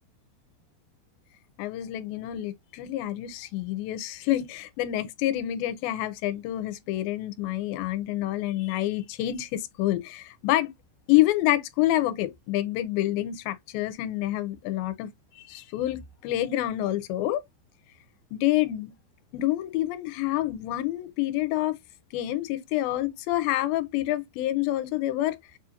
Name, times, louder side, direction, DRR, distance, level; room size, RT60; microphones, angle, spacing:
voice 1, 1.6-10.7 11.1-17.4 18.3-18.9 19.3-21.8 22.1-25.4, left 15 dB, 85° left, 2.4 m, -27 dB
6.7 x 2.4 x 2.8 m
omnidirectional pair, 4.2 m